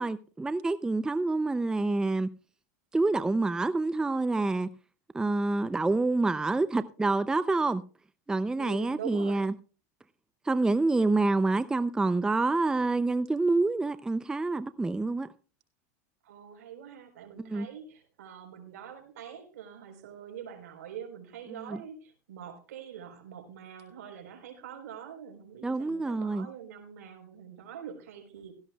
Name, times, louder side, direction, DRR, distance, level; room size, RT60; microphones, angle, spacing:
voice 1, 0.0-2.3 2.9-4.7 5.1-7.8 8.3-9.5 10.5-15.3 17.4-17.7 21.5-21.8 25.6-26.5, right 3 dB, 10° right, 0.5 m, -27 dB
voice 2, 8.6-9.5 16.2-28.5, right 8 dB, 85° right, 4.2 m, -44 dB
16.5 x 14.5 x 2.3 m
supercardioid pair, 120°, 8 cm